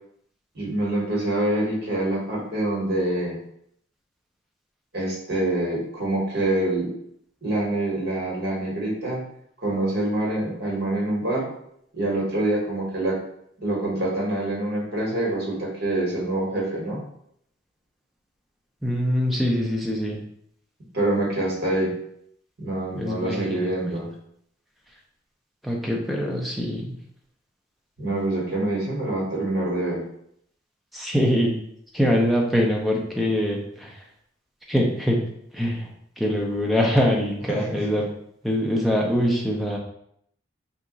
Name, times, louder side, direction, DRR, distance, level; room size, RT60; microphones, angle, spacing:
voice 1, 0.5-3.3 4.9-6.9 7.4-9.2 9.6-11.5 11.9-13.2 13.6-17.0 20.9-21.9 22.6-24.1 28.0-30.0 37.5-38.0, right 1 dB, 55° right, -4 dB, 1.2 m, -26 dB
voice 2, 18.8-20.2 22.9-23.7 25.6-26.9 30.9-31.6 31.9-33.9 34.7-35.2 35.5-35.9 36.2-38.1 38.4-39.8, equal, ahead, -2 dB, 0.5 m, -23 dB
2.9 x 2.4 x 3.8 m, 0.71 s
head